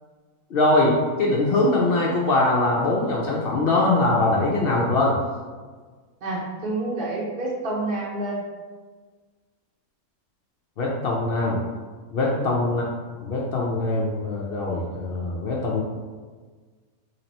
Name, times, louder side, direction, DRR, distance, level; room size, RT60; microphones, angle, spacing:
voice 1, 0.5-5.2 10.8-11.6 12.1-12.9 13.2-15.8, left 2 dB, 70° left, -3 dB, 0.5 m, -22 dB
voice 2, 6.2-8.4 12.2-12.5, right 2 dB, 50° right, -5 dB, 0.7 m, -28 dB
3.0 x 2.8 x 4.1 m, 1.4 s
omnidirectional pair, 1.5 m